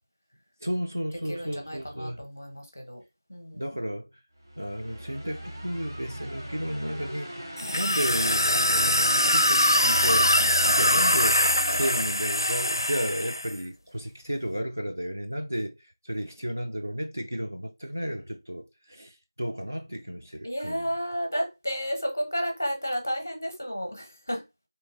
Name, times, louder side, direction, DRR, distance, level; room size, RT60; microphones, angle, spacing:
voice 1, 0.6-2.2 3.5-4.1 4.6-7.3 7.7-10.3 10.6-11.4 11.7-15.8 16.0-20.9, equal, 35° right, 0.4 m, -33 dB
voice 2, 1.3-3.0 3.3-3.6 7.6-7.8 20.4-24.4, equal, 35° left, 0.6 m, -32 dB
sound 1, 4.4-12.7, right 1 dB, 55° right, 0.8 m, -37 dB
sound 2, 7.6-13.5, left 1 dB, 75° left, 0.4 m, -23 dB
2.7 x 2.1 x 2.8 m
figure-of-eight pair, 180°, 2 cm